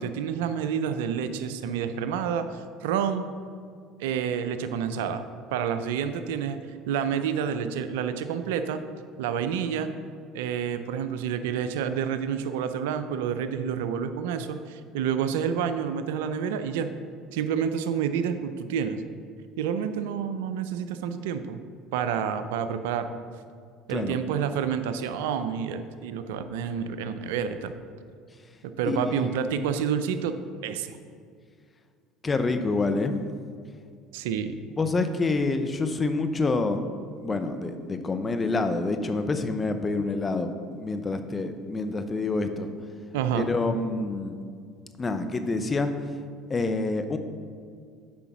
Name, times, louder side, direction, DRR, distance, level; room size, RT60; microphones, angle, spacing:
voice 1, 0.0-3.3 4.0-5.2 5.5-6.6 6.9-8.8 9.2-9.9 10.3-16.9 17.3-19.0 19.6-21.6 21.9-23.1 23.9-27.7 28.6-30.4 30.6-31.0 34.1-34.6 43.1-43.5, right 7 dB, 80° right, 10 dB, 0.4 m, -29 dB
voice 2, 28.9-29.4 32.2-33.1 34.8-36.8 37.2-42.7 43.3-44.4 45.0-45.9 46.5-47.2, left 3 dB, 25° left, 8 dB, 0.7 m, -27 dB
6.9 x 5.0 x 6.0 m, 2.1 s
hypercardioid pair, 75°, 0 cm